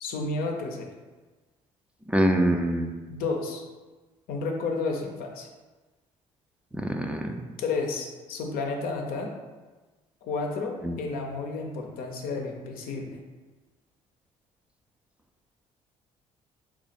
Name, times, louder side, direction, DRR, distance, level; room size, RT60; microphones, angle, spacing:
voice 1, 0.0-0.9 3.1-3.6 4.3-5.5 7.6-9.3 10.2-13.2, left 3 dB, 70° left, 1 dB, 0.6 m, -31 dB
voice 2, 2.1-2.9 6.7-7.4 10.8-11.0, right 1 dB, 10° right, 3 dB, 0.4 m, -24 dB
3.0 x 2.4 x 4.1 m, 1.3 s
supercardioid pair, 60°, 16 cm